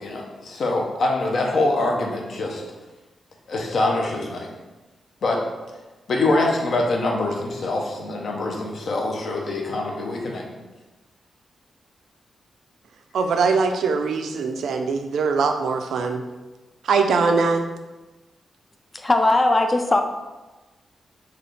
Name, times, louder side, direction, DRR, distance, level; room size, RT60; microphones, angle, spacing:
voice 1, 0.0-2.6 3.5-4.5 5.2-5.4 6.1-10.5, left 2 dB, 65° left, 0 dB, 0.6 m, -24 dB
voice 2, 13.1-16.2 16.8-17.6, right 4 dB, 90° right, 6 dB, 0.3 m, -22 dB
voice 3, 18.9-20.0, left 2 dB, 25° left, 5 dB, 0.3 m, -19 dB
3.9 x 2.3 x 3.2 m, 1.1 s
wide cardioid pair, 120°, 0 cm